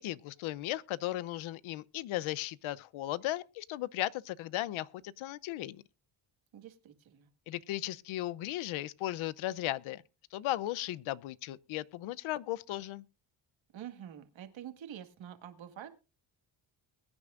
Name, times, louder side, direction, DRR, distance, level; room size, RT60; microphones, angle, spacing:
voice 1, 0.0-5.8 7.5-10.0 10.3-13.0, left 15 dB, 85° left, 0.8 m, -36 dB
voice 2, 6.5-7.3 13.7-15.9, right 10 dB, 70° right, 2.0 m, -47 dB
22.0 x 9.8 x 2.5 m
cardioid pair, 75°, 48 cm